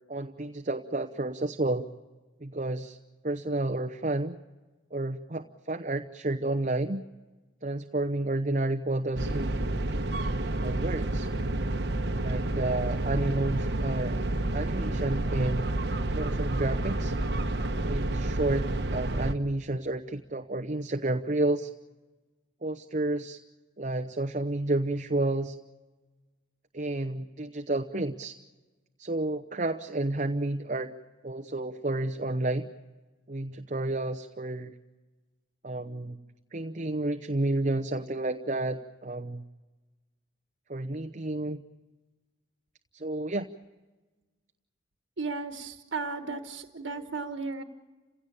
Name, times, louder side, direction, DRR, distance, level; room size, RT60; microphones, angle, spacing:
voice 1, 0.1-1.9 2.4-3.0 3.2-4.4 4.9-7.0 7.6-10.3 10.6-11.3 12.2-14.2 14.5-15.7 16.1-17.1 17.9-21.7 22.6-23.4 23.8-25.6 26.7-28.3 29.0-30.9 31.2-32.7 33.3-34.7 35.6-36.2 36.5-39.4 40.7-41.6 42.9-43.5, right 2 dB, 40° right, 6 dB, 0.8 m, -31 dB
sound 1, 9.2-19.3, right 1 dB, 60° right, 1.2 m, -29 dB
voice 2, 45.2-47.6, right 4 dB, 90° right, 6 dB, 1.4 m, -35 dB
29.5 x 17.0 x 8.6 m, 1.2 s
head